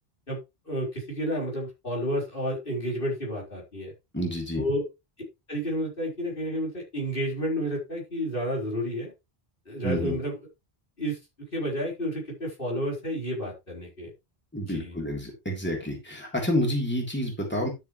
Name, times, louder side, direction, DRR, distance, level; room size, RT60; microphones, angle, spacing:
voice 1, 0.6-3.9 4.5-4.8 5.5-9.1 9.7-10.4 11.0-11.2 11.5-14.1 14.6-15.0, equal, 60° left, -2 dB, 4.5 m, -30 dB
voice 2, 4.1-4.6 9.8-10.1 14.5-17.7, equal, 10° left, -1 dB, 3.3 m, -29 dB
12.0 x 7.1 x 3.1 m, 0.24 s
omnidirectional pair, 1.1 m